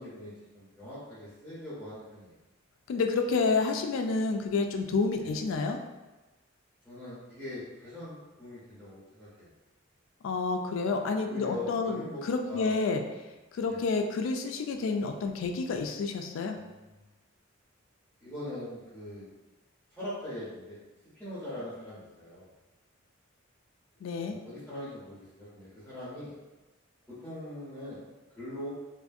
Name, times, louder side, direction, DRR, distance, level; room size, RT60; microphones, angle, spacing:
voice 1, 0.0-2.4 5.2-5.3 6.8-9.5 11.2-12.2 12.5-12.7 13.7-13.8 16.5-17.0 18.2-19.3 19.9-20.8 21.1-22.5 24.1-26.3 27.1-28.0 28.4-28.7, left 1 dB, 5° left, -12 dB, 0.7 m, -42 dB
voice 2, 2.9-5.8 10.2-13.0 13.5-16.6 24.0-24.4, left 4 dB, 70° left, 4 dB, 0.3 m, -29 dB
2.5 x 2.5 x 2.4 m, 1.1 s
head